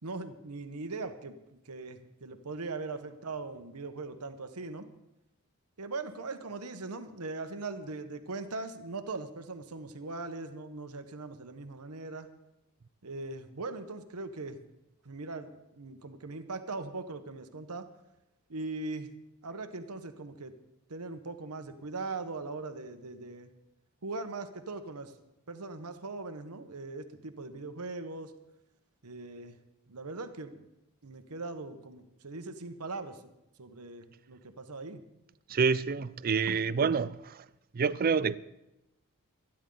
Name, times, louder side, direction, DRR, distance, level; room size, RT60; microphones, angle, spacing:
voice 1, 0.0-1.4 1.6-4.9 5.8-12.3 13.0-14.6 15.0-17.9 18.5-19.1 19.4-20.5 20.9-23.5 24.0-25.1 25.5-28.3 29.0-29.6 29.9-30.6 31.0-33.3 33.6-35.0, right 3 dB, 85° right, 1.1 m, -40 dB
voice 2, 35.5-37.5 37.7-38.4, right 5 dB, 40° right, 0.4 m, -28 dB
26.5 x 10.0 x 3.9 m
head